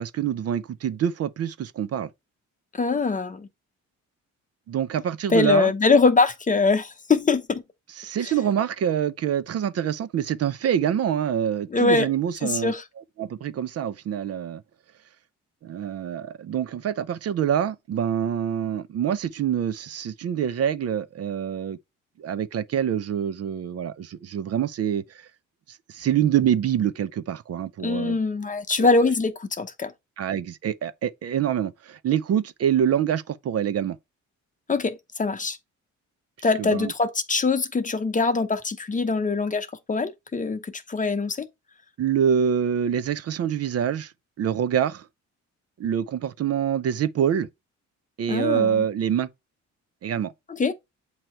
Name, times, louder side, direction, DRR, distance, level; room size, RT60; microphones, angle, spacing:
voice 1, 0.0-2.1 4.7-5.7 8.0-12.7 13.2-14.6 15.6-21.8 22.2-25.3 25.7-28.2 28.8-29.1 30.2-34.0 36.6-36.9 42.0-44.1 44.4-45.1 45.8-47.5 48.2-49.3 50.0-50.3, right 9 dB, 55° right, 0.6 m, -25 dB
voice 2, 2.8-3.5 5.3-7.6 8.2-8.3 11.7-12.1 12.4-12.8 27.8-29.9 34.7-35.6 36.4-41.5 48.3-48.8 50.5-50.7, left 4 dB, 25° left, 0.9 m, -23 dB
7.6 x 2.9 x 4.5 m
cardioid pair, 90°, 30 cm